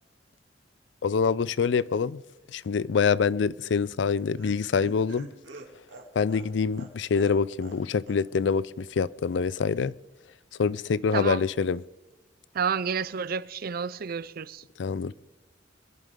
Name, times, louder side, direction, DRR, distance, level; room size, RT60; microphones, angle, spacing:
voice 1, 1.0-2.2 2.5-5.3 6.2-9.9 10.6-11.8 14.8-15.1, left 5 dB, 70° left, 0.4 m, -25 dB
Laughter, 3.8-7.8 8.1-8.2 8.5-8.6, right 2 dB, 85° right, 2.7 m, -47 dB
voice 2, 12.5-14.6, right 6 dB, 50° right, 0.5 m, -30 dB
25.0 x 11.0 x 3.7 m
head